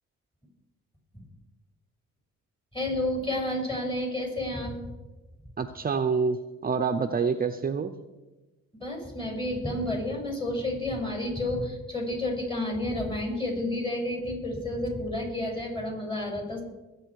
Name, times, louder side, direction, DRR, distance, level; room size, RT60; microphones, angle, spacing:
voice 1, 2.7-4.9 8.8-16.6, left 1 dB, 15° left, 2 dB, 5.8 m, -30 dB
voice 2, 5.6-6.4 6.6-7.9, right 5 dB, 30° right, 7 dB, 0.7 m, -26 dB
21.0 x 8.4 x 4.8 m, 1.1 s
cardioid pair, 90°, 30 cm